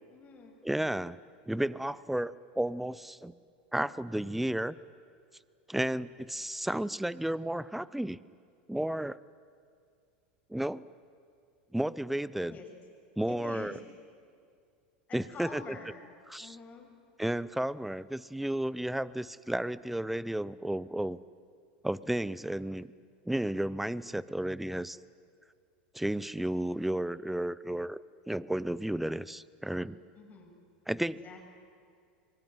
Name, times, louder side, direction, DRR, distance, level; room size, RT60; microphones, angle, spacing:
voice 1, 0.1-0.5 12.5-12.7 13.3-13.8 15.1-16.0 16.4-16.9 30.1-30.5 31.1-31.4, left 4 dB, 30° left, 1 dB, 7.3 m, -46 dB
voice 2, 0.6-1.2 1.5-3.3 3.7-4.7 5.7-8.2 8.7-9.2 10.5-10.8 11.7-12.6 13.2-13.7 15.1-15.8 16.3-16.6 17.2-21.2 21.8-22.9 23.3-25.0 25.9-28.0 28.3-30.0 30.9-31.2, right 1 dB, 5° right, 19 dB, 0.7 m, -32 dB
25.0 x 22.5 x 9.3 m, 2.3 s
hypercardioid pair, 100°, 5 cm